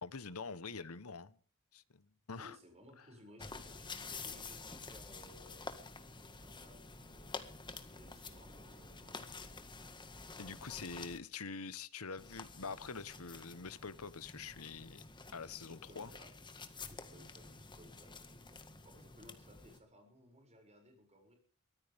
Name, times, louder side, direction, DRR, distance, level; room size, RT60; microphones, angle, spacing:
voice 1, 0.0-1.4 1.7-2.6 10.4-15.0 15.3-16.1, left 5 dB, 70° left, 1.2 m, -45 dB
voice 2, 2.4-5.6 6.4-7.5 7.8-9.2 15.7-16.3 16.9-21.4, equal, 30° right, 6.7 m, -60 dB
sound 1, 3.4-11.2 12.2-19.8, left 4 dB, 20° left, 1.8 m, -50 dB
23.5 x 15.5 x 3.6 m
head